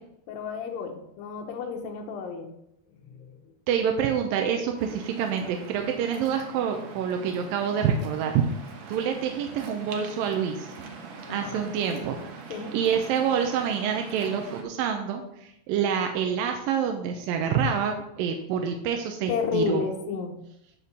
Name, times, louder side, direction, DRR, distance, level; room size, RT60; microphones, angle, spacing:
voice 1, 0.3-2.5 3.2-3.4 11.3-11.6 12.5-12.8 19.3-20.4, left 6 dB, 75° left, 2 dB, 2.3 m, -31 dB
voice 2, 3.7-8.4 8.9-10.7 11.3-12.2 12.7-19.8, right 7 dB, 75° right, 4 dB, 2.3 m, -27 dB
Waves surf, 4.8-14.6, right 4 dB, 60° right, 1.9 m, -43 dB
9.5 x 4.3 x 6.8 m, 0.78 s
omnidirectional pair, 4.5 m